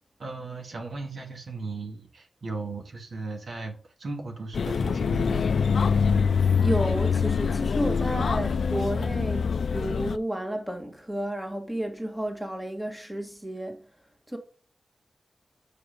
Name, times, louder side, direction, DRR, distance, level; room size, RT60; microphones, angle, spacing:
voice 1, 0.2-5.5, right 3 dB, 75° right, 2.1 m, -36 dB
sound 1, 4.5-10.2, left 6 dB, 90° left, 0.3 m, -24 dB
voice 2, 6.5-13.8 14.3-14.4, right 1 dB, 10° right, 1.9 m, -31 dB
7.6 x 4.9 x 5.3 m
wide cardioid pair, 85°, 0 cm